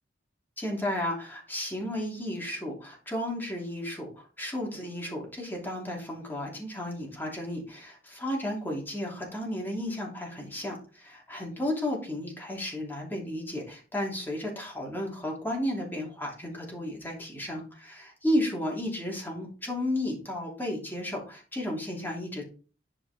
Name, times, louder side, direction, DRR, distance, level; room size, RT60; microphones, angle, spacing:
voice 1, 0.6-22.5, left 1 dB, 10° left, -1 dB, 2.9 m, -33 dB
11.0 x 5.0 x 3.5 m, 0.36 s
head